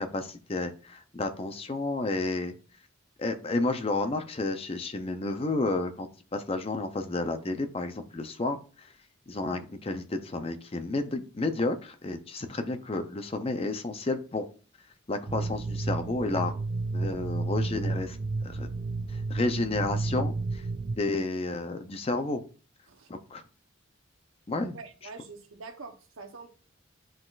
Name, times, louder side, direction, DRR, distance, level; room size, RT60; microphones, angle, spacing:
voice 1, 0.0-2.5 3.2-8.9 9.3-14.5 15.1-16.5 16.9-18.2 18.4-18.7 19.1-20.6 21.0-22.4 23.1-23.4 24.5-24.8, left 2 dB, 30° left, 0.6 m, -31 dB
sound 1, 15.3-21.0, right 3 dB, 45° right, 0.4 m, -31 dB
voice 2, 24.7-26.5, right 4 dB, 85° right, 0.9 m, -45 dB
10.0 x 3.8 x 2.5 m
head